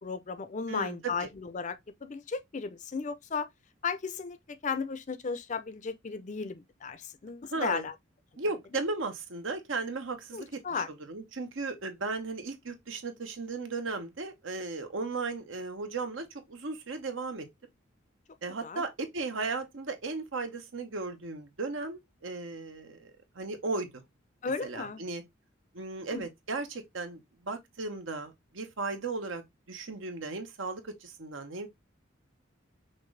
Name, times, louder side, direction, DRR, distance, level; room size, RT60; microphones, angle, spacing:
voice 1, 0.0-3.5 3.8-7.9 10.3-10.9 18.6-18.8 24.4-25.0 26.0-26.3, left 5 dB, 40° left, 0.5 m, -35 dB
voice 2, 0.7-1.3 7.5-7.8 8.4-17.5 18.4-24.0 24.6-25.2 25.7-29.4 29.7-31.7, right 3 dB, 75° right, 1.0 m, -36 dB
5.9 x 2.6 x 3.2 m
head